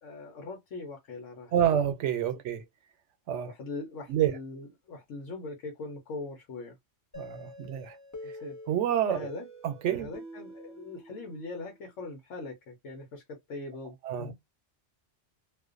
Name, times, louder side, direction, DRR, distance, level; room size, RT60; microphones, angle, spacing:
voice 1, 0.0-1.5 3.5-6.8 8.2-8.6 9.1-9.5 9.9-14.3, left 3 dB, 90° left, 1.1 m, -41 dB
voice 2, 1.5-2.6 3.3-3.5 4.1-4.3 7.2-7.9 8.7-9.3 9.6-10.1 14.0-14.3, right 10 dB, 80° right, 0.9 m, -28 dB
sound 1, 7.1-11.8, equal, 20° left, 0.6 m, -47 dB
2.5 x 2.2 x 2.4 m
omnidirectional pair, 1.2 m